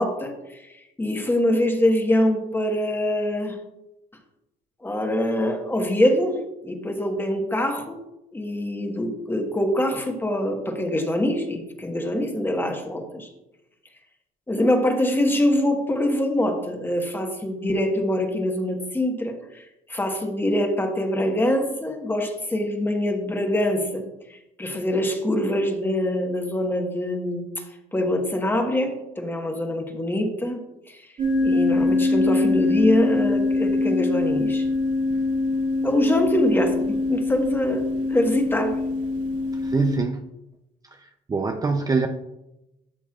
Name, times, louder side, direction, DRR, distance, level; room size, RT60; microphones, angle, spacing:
voice 1, 0.0-3.6 4.8-8.0 8.3-13.3 14.5-24.0 24.3-27.6 27.9-31.0 31.4-34.7 35.8-38.7, left 1 dB, 10° left, 3 dB, 1.3 m, -24 dB
sound 1, 31.2-40.0, left 2 dB, 50° right, 2.3 m, -23 dB
voice 2, 39.6-40.3 40.9-42.1, right 4 dB, 20° right, 6 dB, 0.5 m, -24 dB
12.0 x 7.0 x 2.4 m, 0.93 s
cardioid pair, 110°, 17 cm